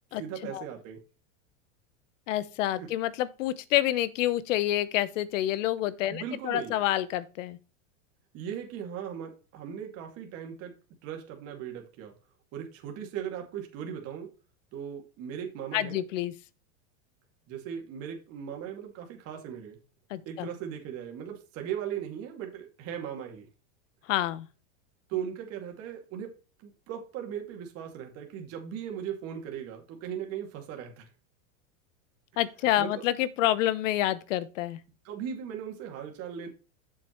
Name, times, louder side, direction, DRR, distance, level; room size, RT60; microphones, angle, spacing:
voice 1, 0.2-1.0 2.8-2.9 6.1-6.8 8.3-10.8 11.0-12.1 12.5-14.3 14.7-16.0 17.5-19.8 20.3-23.5 25.1-31.1 32.8-33.0 35.0-36.5, right 9 dB, 35° right, 2.3 m, -38 dB
voice 2, 2.3-7.6 15.7-16.3 20.1-20.5 24.1-24.5 32.4-34.8, left 13 dB, 70° left, 1.0 m, -28 dB
7.7 x 7.3 x 3.1 m
supercardioid pair, 155°, 39 cm